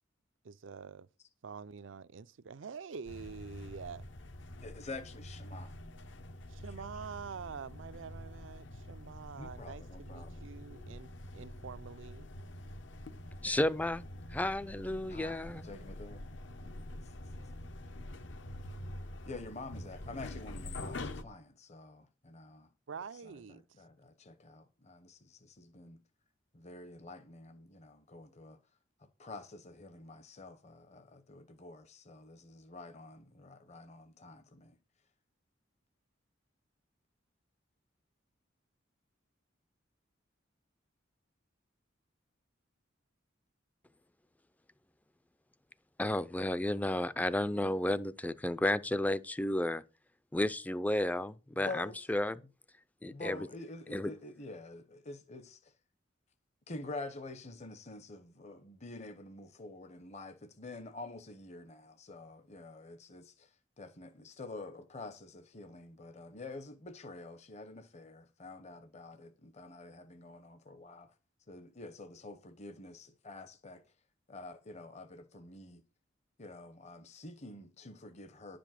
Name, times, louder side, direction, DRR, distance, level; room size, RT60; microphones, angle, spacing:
voice 1, 0.4-1.1 1.4-4.1 6.5-12.3 22.9-23.6, right 6 dB, 75° right, 0.5 m, -46 dB
sound 1, 3.1-21.2, left 1 dB, 65° left, 0.9 m, -46 dB
voice 2, 4.6-5.8 6.7-7.1 9.3-10.5 15.1-16.2 17.0-17.5 19.3-22.7 23.1-26.0 26.5-28.6 29.0-34.8 51.6-52.0 53.1-55.7 56.7-71.1 71.5-73.9 74.3-75.8 76.4-78.6, left 2 dB, 35° left, 0.8 m, -48 dB
voice 3, 13.4-14.1 14.3-15.7 46.0-49.8 50.3-52.4 53.0-53.4 53.9-54.1, left 1 dB, 10° left, 0.4 m, -32 dB
10.5 x 5.2 x 7.5 m
head